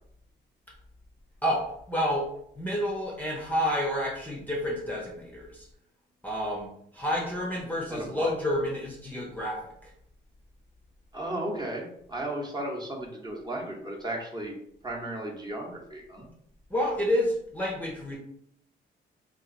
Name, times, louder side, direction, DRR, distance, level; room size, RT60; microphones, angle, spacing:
voice 1, 1.4-2.3 2.6-5.7 6.2-6.7 6.9-9.9 16.7-18.2, equal, 10° left, -3 dB, 0.7 m, -29 dB
voice 2, 7.9-8.3 11.1-14.6 14.8-16.3, right 1 dB, 20° right, -2 dB, 1.0 m, -35 dB
2.8 x 2.5 x 3.8 m, 0.70 s
cardioid pair, 90°, 20 cm